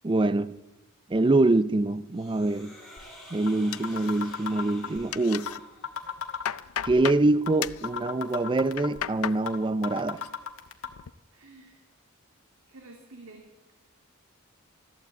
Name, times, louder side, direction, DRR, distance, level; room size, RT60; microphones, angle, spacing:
voice 1, 0.0-0.5 1.1-2.7 3.3-5.5 6.8-10.2, right 2 dB, 25° right, 0.4 m, -24 dB
sound 1, 2.1-6.2, left 1 dB, ahead, 4.0 m, -49 dB
sound 2, 3.0-3.1 3.5-3.6 3.8-5.0 5.5-5.6 5.8-7.0 7.5-7.6 7.8-9.0 9.5-9.6 9.8-10.9, left 7 dB, 65° left, 1.4 m, -34 dB
sound 3, 3.7-4.6 4.8-5.6 6.0-7.2 7.6-7.9 8.5-9.4 9.8-10.3 10.7-11.1, left 10 dB, 80° left, 0.5 m, -35 dB
voice 2, 11.3-11.8 12.7-13.7, right 2 dB, 75° right, 2.2 m, -50 dB
14.0 x 12.0 x 8.1 m
head